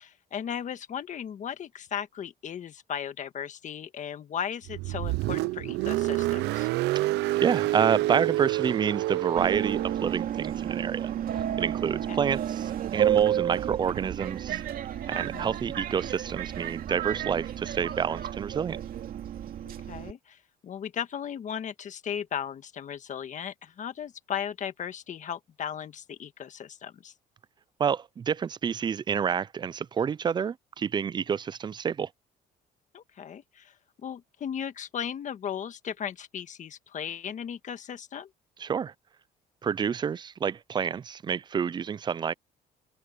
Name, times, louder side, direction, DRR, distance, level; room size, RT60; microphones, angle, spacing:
voice 1, 0.0-6.7 12.1-12.2 15.2-15.6 19.6-20.4 20.6-27.1 32.9-33.7 34.0-38.3, left 8 dB, 45° left, 1.6 m, -36 dB
Car, 4.7-10.1, right 17 dB, 85° right, 0.6 m, -28 dB
voice 2, 7.4-11.1 11.6-14.6 15.1-18.8 27.8-32.1 38.6-38.9 39.6-42.3, right 7 dB, 25° right, 0.4 m, -28 dB
Subway metro underground, 9.4-20.1, right 10 dB, 60° right, 2.4 m, -31 dB
open air
cardioid pair, 110°, 17 cm